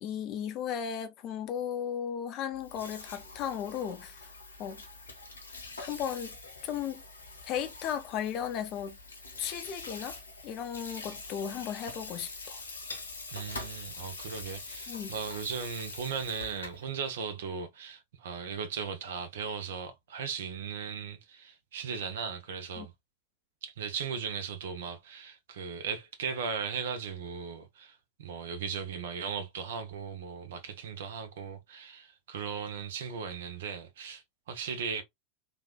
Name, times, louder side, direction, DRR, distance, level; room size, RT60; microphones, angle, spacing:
voice 1, 0.0-4.3 4.6-4.8 5.8-6.3 6.6-7.0 7.4-9.0 9.4-10.2 10.4-12.6 14.9-15.1 22.8-22.9, left 8 dB, 35° left, 0.6 m, -35 dB
Water tap faucet / Sink (filling or washing), 2.5-16.9, left 3 dB, 70° left, 0.9 m, -44 dB
voice 2, 13.3-22.9 23.6-35.0, right 6 dB, 60° right, 0.8 m, -37 dB
3.2 x 2.5 x 2.2 m
figure-of-eight pair, 90°, 0 cm